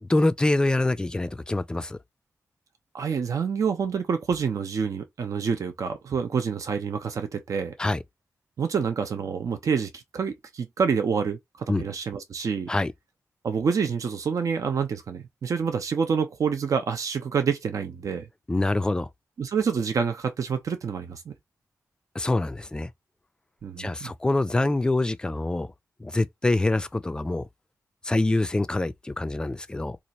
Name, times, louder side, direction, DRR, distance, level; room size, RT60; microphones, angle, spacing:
voice 1, 0.0-2.0 7.8-8.0 11.7-11.8 12.7-12.9 18.5-19.1 22.1-22.9 23.8-25.7 26.0-27.5 28.0-30.0, left 2 dB, 15° left, 0.3 m, -25 dB
voice 2, 2.9-7.8 8.6-12.7 13.4-18.3 19.4-21.4 23.6-24.1, right 6 dB, 65° right, 0.7 m, -27 dB
2.8 x 2.5 x 4.1 m
wide cardioid pair, 130°, 6 cm